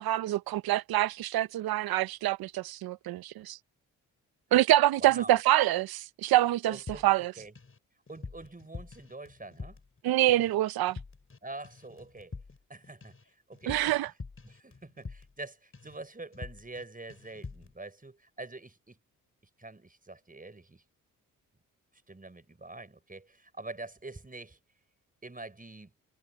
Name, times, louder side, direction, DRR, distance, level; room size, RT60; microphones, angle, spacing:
voice 1, 0.0-3.6 4.5-6.8 7.0-7.3 10.0-11.0 13.7-14.1, right 15 dB, 75° right, 0.8 m, -26 dB
voice 2, 5.0-5.4 6.7-7.5 8.1-9.8 11.4-12.3 12.7-14.0 14.4-19.0 19.6-20.8 22.1-24.6 25.2-25.9, right 2 dB, 20° right, 6.8 m, -45 dB
sound 1, 6.9-7.8 8.1-10.0 10.3-10.6 10.9-11.4 11.6-15.5 15.7-16.0 16.3-16.8 17.1-17.7, left 4 dB, 35° left, 5.3 m, -45 dB
supercardioid pair, 55°, 37 cm